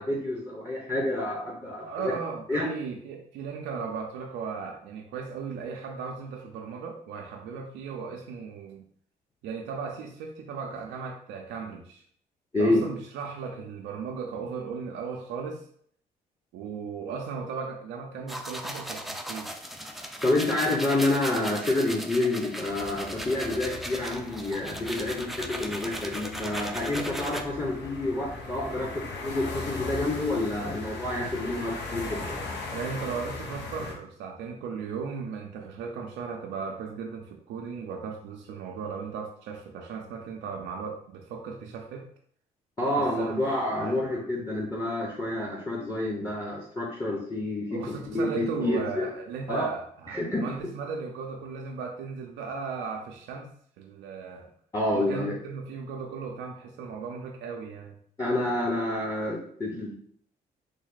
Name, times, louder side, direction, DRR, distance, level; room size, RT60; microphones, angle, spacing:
voice 1, 0.0-2.1 2.5-2.7 12.5-12.8 20.2-32.3 42.8-47.8 48.1-49.1 49.5-49.7 50.1-50.4 54.7-55.4 58.2-59.9, left 1 dB, 20° left, -2 dB, 0.8 m, -28 dB
voice 2, 1.6-8.8 9.4-12.0 12.5-15.6 16.5-19.5 32.7-42.0 42.9-43.5 43.8-44.0 47.7-53.5 53.8-54.5 54.9-58.0, right 5 dB, 75° right, 2 dB, 0.5 m, -36 dB
sound 1, 18.3-27.4, equal, ahead, 0.4 m, -37 dB
sound 2, 22.6-33.9, left 3 dB, 70° left, 0.8 m, -39 dB
3.2 x 2.1 x 3.9 m, 0.62 s
supercardioid pair, 55°, 18 cm